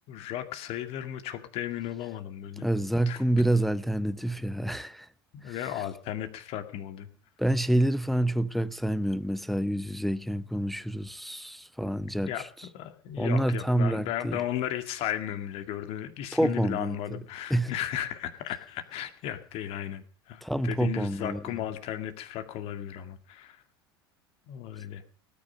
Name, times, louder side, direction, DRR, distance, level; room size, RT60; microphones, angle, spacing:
voice 1, 0.1-2.7 3.1-3.2 5.3-7.1 12.2-12.5 12.7-23.6 24.5-25.0, left 11 dB, 50° left, 2.1 m, -35 dB
voice 2, 2.6-5.1 5.4-5.6 7.4-12.3 13.2-14.4 16.3-17.0 17.5-17.7 20.4-21.4, right 1 dB, ahead, 0.7 m, -27 dB
18.5 x 9.8 x 6.5 m
hypercardioid pair, 85°, 13 cm